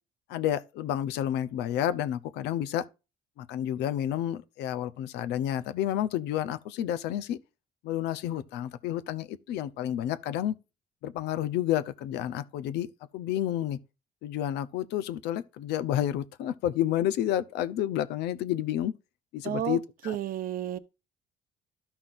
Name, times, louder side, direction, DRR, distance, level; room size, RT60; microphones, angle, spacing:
voice 1, 0.3-2.9 3.4-7.4 7.8-10.6 11.0-12.9 13.1-13.8 14.2-18.9 19.3-20.2, left 11 dB, 85° left, 0.8 m, -30 dB
voice 2, 19.4-19.8 20.0-20.8, right 11 dB, 60° right, 0.8 m, -31 dB
13.0 x 5.8 x 2.6 m
cardioid pair, 110°, 17 cm